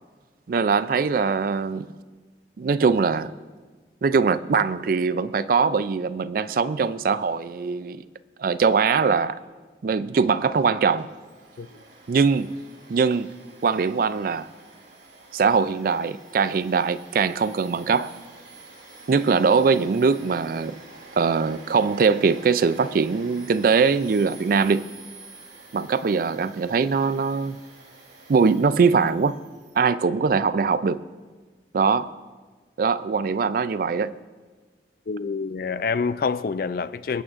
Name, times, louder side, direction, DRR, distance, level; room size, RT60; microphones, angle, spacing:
voice 1, 0.5-1.9 2.6-3.3 4.0-8.0 8.4-9.4 9.8-11.1 12.1-12.5 12.9-13.3 13.6-14.5 15.3-18.1 19.1-20.8 21.2-24.8 25.7-27.6 28.3-29.4 29.8-31.0 31.7-32.1 32.8-34.2, right 5 dB, 50° right, 0.3 m, -22 dB
Domestic sounds home sounds, 11.0-29.8, right 3 dB, 80° right, 2.6 m, -48 dB
voice 2, 35.1-37.2, left 5 dB, 55° left, 0.4 m, -27 dB
24.0 x 8.6 x 2.5 m
head